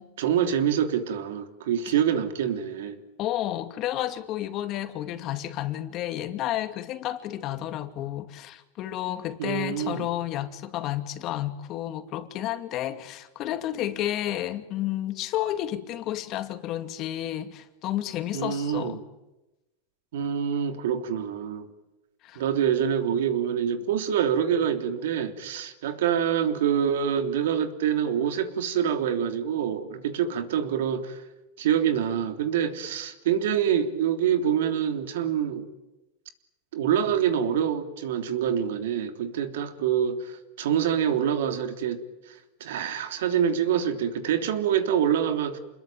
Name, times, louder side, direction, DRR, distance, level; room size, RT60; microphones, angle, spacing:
voice 1, 0.2-3.0 9.4-10.1 18.3-19.0 20.1-21.7 22.3-31.2 31.6-35.7 36.7-42.0 42.3-45.6, right 9 dB, 80° right, 3.4 m, -26 dB
voice 2, 3.2-19.0 22.2-22.4, left 13 dB, 40° left, 2.5 m, -31 dB
28.5 x 21.5 x 9.3 m
supercardioid pair, 145°, 0 cm